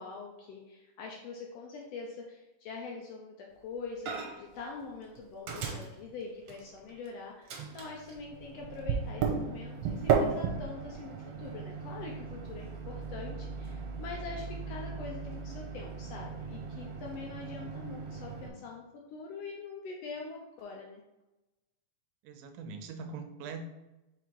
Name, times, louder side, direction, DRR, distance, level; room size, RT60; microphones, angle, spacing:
voice 1, 0.0-18.8 19.1-21.0, left 4 dB, 75° left, -1 dB, 1.5 m, -44 dB
Microwave oven, 4.1-4.5 4.8-7.1 7.5-18.5, right 6 dB, 70° right, 1.7 m, -36 dB
voice 2, 22.2-23.6, right 5 dB, 85° right, 7 dB, 2.1 m, -42 dB
4.9 x 4.2 x 4.5 m, 1.0 s
omnidirectional pair, 3.5 m